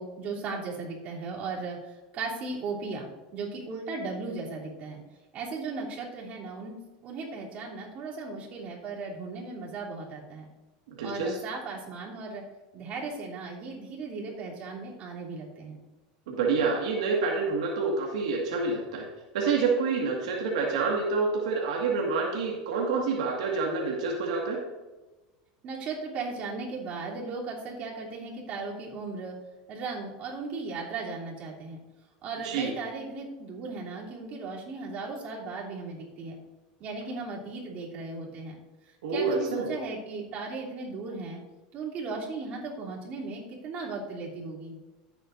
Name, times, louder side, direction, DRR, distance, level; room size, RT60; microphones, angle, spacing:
voice 1, 0.0-5.0 5.3-6.8 7.0-10.5 11.0-12.4 12.7-15.8 25.6-29.4 29.7-31.8 32.2-36.4 36.8-38.5 39.1-41.4 41.7-44.7, right 3 dB, 45° right, -4 dB, 3.1 m, -36 dB
voice 2, 10.9-11.4 16.3-19.0 19.3-24.6 32.4-32.7 39.0-39.7, right 4 dB, 85° right, -2 dB, 1.8 m, -27 dB
14.5 x 8.0 x 2.6 m, 1.2 s
supercardioid pair, 120°, 3 cm